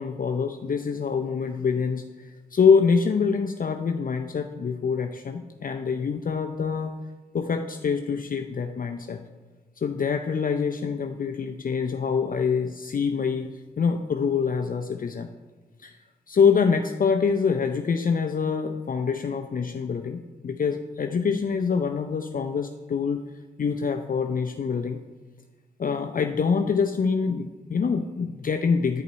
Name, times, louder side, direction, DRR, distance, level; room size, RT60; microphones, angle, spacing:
voice 1, 0.0-2.0 2.5-6.9 7.3-9.2 9.8-13.5 13.8-15.3 15.8-15.9 16.3-23.3 23.6-25.0 25.8-29.0, left 5 dB, 45° left, 6 dB, 0.5 m, -25 dB
10.5 x 5.2 x 4.1 m, 1.2 s
cardioid pair, 50°, 20 cm